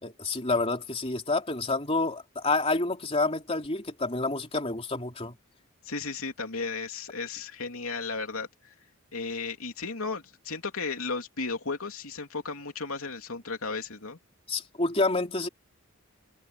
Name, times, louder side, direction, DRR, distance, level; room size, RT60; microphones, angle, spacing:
voice 1, 0.0-5.3 14.5-15.5, left 3 dB, 25° left, 3.5 m, -28 dB
voice 2, 5.8-8.5 9.1-14.2, left 4 dB, 70° left, 3.2 m, -34 dB
head